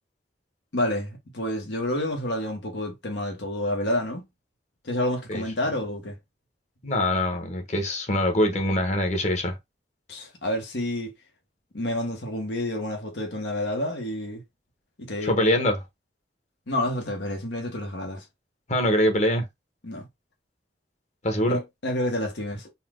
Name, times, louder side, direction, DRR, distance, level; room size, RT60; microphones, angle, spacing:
voice 1, 0.7-4.2 4.8-6.2 10.1-11.1 11.7-14.4 15.0-15.5 16.7-18.3 19.8-20.1 21.5-22.7, left 1 dB, 90° left, 1.2 m, -29 dB
voice 2, 6.8-9.6 15.2-15.8 18.7-19.4 21.2-21.6, left 1 dB, 45° left, 1.1 m, -23 dB
4.2 x 2.3 x 3.6 m
head